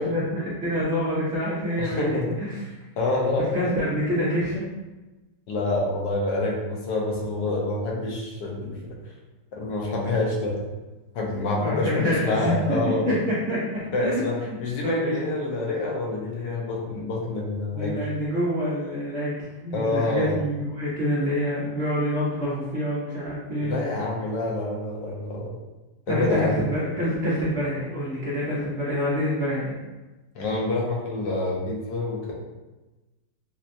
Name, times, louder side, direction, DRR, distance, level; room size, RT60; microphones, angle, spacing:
voice 1, 0.0-2.6 3.5-4.7 11.6-12.5 13.0-15.1 17.7-23.8 26.1-29.8, equal, 55° right, -8 dB, 0.8 m, -27 dB
voice 2, 1.8-2.3 3.0-3.7 5.5-9.0 9.5-10.6 11.1-13.1 13.9-18.0 19.7-20.4 23.6-25.5 26.1-26.7 30.3-32.3, left 2 dB, 75° left, -2 dB, 1.3 m, -27 dB
4.3 x 2.1 x 2.5 m, 1.1 s
omnidirectional pair, 1.9 m